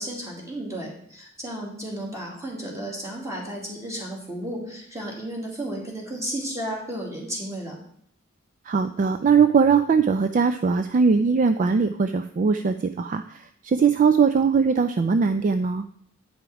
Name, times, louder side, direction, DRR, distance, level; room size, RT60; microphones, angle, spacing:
voice 1, 0.0-7.8, right 1 dB, 15° right, -2 dB, 2.1 m, -33 dB
voice 2, 8.7-15.9, right 5 dB, 40° right, 9 dB, 0.3 m, -20 dB
8.8 x 5.1 x 4.7 m, 0.66 s
head